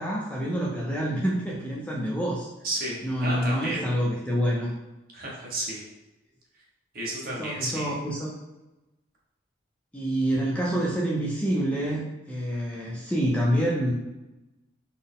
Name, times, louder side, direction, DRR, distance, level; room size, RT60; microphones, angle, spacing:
voice 1, 0.0-2.5 3.0-4.7 7.2-8.3 9.9-13.9, equal, 5° left, -4 dB, 0.4 m, -27 dB
voice 2, 2.6-3.8 5.1-5.8 6.9-7.9, right 1 dB, 50° right, -3 dB, 1.0 m, -32 dB
4.1 x 2.0 x 3.6 m, 1.0 s
head